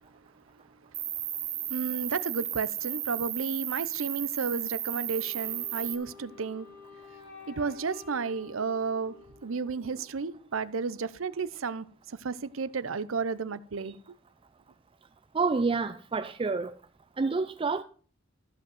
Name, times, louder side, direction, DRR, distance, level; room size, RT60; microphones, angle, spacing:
Cricket, 0.9-5.9, right 11 dB, 45° right, 1.7 m, -34 dB
voice 1, 1.7-6.7 7.5-14.0, right 5 dB, 75° right, 0.7 m, -32 dB
Wind instrument woodwind instrument, 5.1-10.1, left 5 dB, 55° left, 6.1 m, -51 dB
voice 2, 15.3-16.7 17.2-17.8, right 4 dB, 25° right, 0.4 m, -28 dB
14.5 x 5.2 x 7.8 m
head